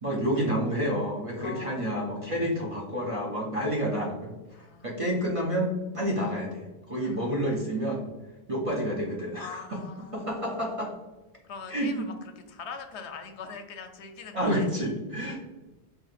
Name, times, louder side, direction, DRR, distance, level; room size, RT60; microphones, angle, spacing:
voice 1, 0.0-4.4 4.8-8.0 8.5-9.8 10.1-10.9 11.7-12.1 14.3-15.4, equal, 40° right, -3 dB, 0.6 m, -29 dB
voice 2, 1.4-2.0 3.6-3.7 4.5-5.1 7.0-7.3 9.4-10.4 11.4-14.7, left 5 dB, 85° left, 6 dB, 0.9 m, -43 dB
4.7 x 3.0 x 2.4 m, 1.1 s
omnidirectional pair, 1.1 m